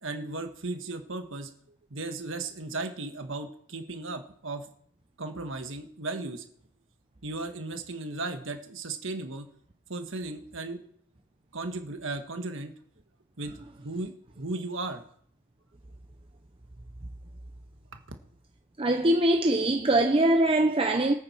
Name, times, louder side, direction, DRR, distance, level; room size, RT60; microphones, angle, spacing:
voice 1, 0.0-1.5 1.9-4.7 5.2-6.5 7.2-9.5 9.9-10.8 11.5-12.7 13.4-15.0, right 2 dB, 60° right, 1.6 m, -36 dB
voice 2, 18.8-21.1, right 1 dB, 25° right, 0.7 m, -22 dB
23.5 x 8.9 x 4.6 m
head